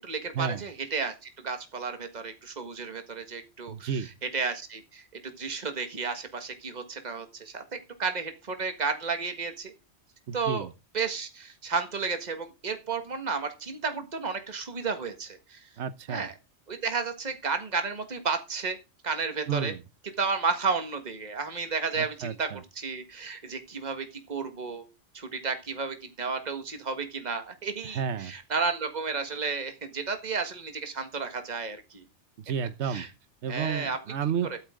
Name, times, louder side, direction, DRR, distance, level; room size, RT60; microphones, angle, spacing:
voice 1, 0.0-3.9 4.3-9.7 10.3-10.7 10.9-15.7 16.1-16.3 16.7-18.8 19.0-19.7 20.2-22.5 22.8-24.9 25.1-32.0 32.9-33.1 33.5-34.0 34.5-34.6, right 5 dB, 35° right, 1.7 m, -32 dB
voice 2, 3.7-4.1 10.3-10.7 15.8-16.3 19.5-19.8 21.9-22.6 27.8-28.3 32.4-33.1 33.4-34.5, right 7 dB, 70° right, 1.1 m, -31 dB
13.0 x 12.5 x 3.7 m
omnidirectional pair, 1.2 m